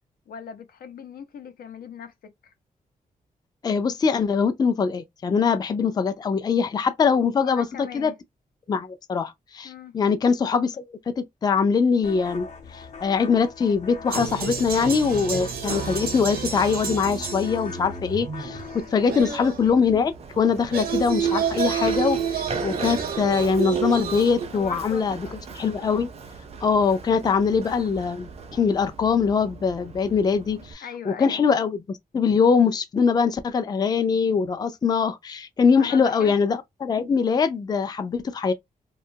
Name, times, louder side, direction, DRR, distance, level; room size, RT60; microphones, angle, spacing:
voice 1, 0.3-2.5 7.4-8.1 9.6-9.9 19.1-19.4 24.5-25.3 30.6-31.4 35.8-36.3, left 7 dB, 90° left, 0.7 m, -40 dB
voice 2, 3.6-8.1 8.7-12.5 12.7-25.3 25.6-26.1 26.6-38.5, left 5 dB, 25° left, 0.4 m, -23 dB
sound 1, 12.0-19.2, left 4 dB, 50° left, 0.8 m, -41 dB
sound 2, 14.1-19.8 20.5-24.5, right 7 dB, 80° right, 0.9 m, -29 dB
Run, 19.2-30.7, right 4 dB, 45° right, 0.5 m, -38 dB
2.7 x 2.3 x 2.7 m
wide cardioid pair, 135°, 15 cm